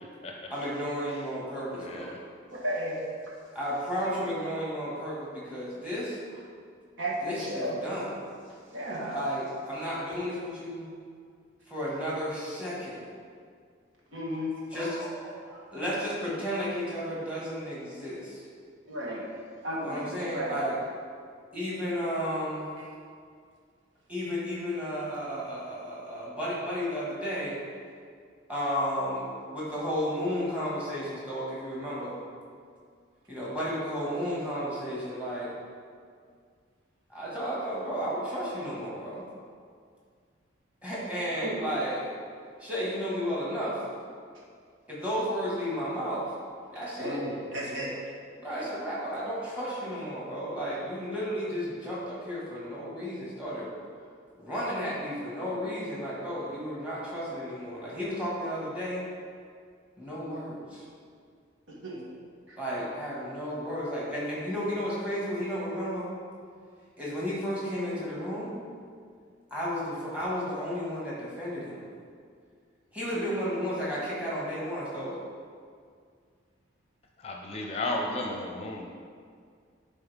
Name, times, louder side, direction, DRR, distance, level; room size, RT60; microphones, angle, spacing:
voice 1, 0.5-2.2 3.5-6.4 7.2-8.2 9.1-10.9 11.7-13.0 14.7-18.5 19.8-20.8 21.5-22.6 24.1-27.6 28.5-29.3 29.5-32.2 33.3-35.5 37.1-39.2 40.8-42.1 42.6-43.8 44.9-46.3 46.7-47.2 48.4-53.7 54.4-59.1 60.0-60.8 62.5-66.1 67.0-68.6 69.5-71.8 72.9-75.2, equal, 5° right, -7 dB, 1.9 m, -33 dB
voice 2, 1.7-2.2 77.2-78.9, left 2 dB, 30° left, 1 dB, 0.6 m, -33 dB
voice 3, 2.5-3.0 7.0-7.8 8.7-9.2 14.1-14.5 18.9-19.3 19.6-20.0 20.3-20.6 41.4-41.8 47.0-47.9 61.7-62.0 73.1-73.2, equal, 75° right, -4 dB, 1.6 m, -33 dB
11.0 x 4.2 x 3.6 m, 2.1 s
head